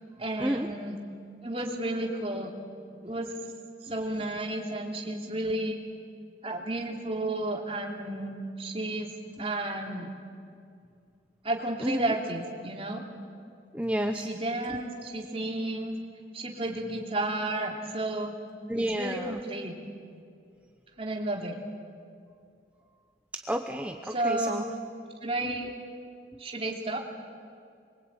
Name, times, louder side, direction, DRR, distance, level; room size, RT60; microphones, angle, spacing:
voice 1, 0.2-1.0 1.4-2.5 3.0-3.3 3.8-5.8 6.4-9.1 9.4-10.1 11.4-13.1 14.1-15.9 16.3-18.4 18.8-19.8 21.0-21.6 24.1-24.7 25.2-25.7 26.4-27.0, right 1 dB, 30° right, 1 dB, 3.1 m, -32 dB
voice 2, 11.8-12.1 13.7-14.3 18.7-19.4 23.3-24.6, equal, 5° right, 5 dB, 0.8 m, -30 dB
26.0 x 23.5 x 9.0 m, 2.3 s
head